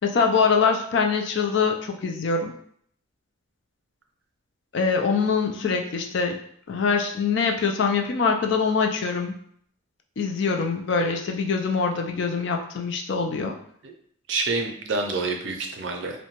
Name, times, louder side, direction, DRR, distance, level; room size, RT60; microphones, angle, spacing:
voice 1, 0.0-2.5 4.7-6.4 6.7-9.3 10.2-13.6, left 5 dB, 55° left, 4 dB, 0.3 m, -24 dB
voice 2, 14.3-16.2, right 3 dB, 60° right, 3 dB, 0.4 m, -27 dB
2.7 x 2.1 x 2.8 m, 0.64 s
head